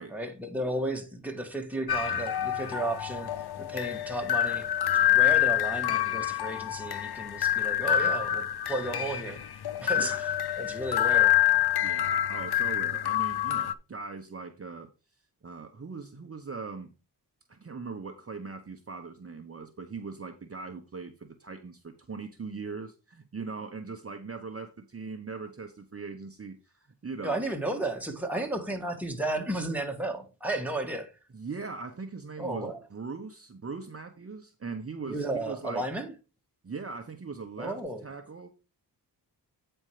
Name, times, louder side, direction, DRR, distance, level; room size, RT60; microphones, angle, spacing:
voice 1, 0.1-9.5 9.8-10.1 10.6-11.4 27.2-31.1 32.4-32.8 35.1-36.1 37.6-38.0, right 1 dB, 5° right, 1.8 m, -33 dB
sound 1, 1.9-13.7, left 12 dB, 70° left, 0.7 m, -27 dB
voice 2, 11.8-14.9 15.4-16.9 17.5-27.4 31.3-35.9 36.6-38.5, right 4 dB, 35° right, 1.0 m, -40 dB
8.9 x 4.5 x 4.9 m
cardioid pair, 65°, 41 cm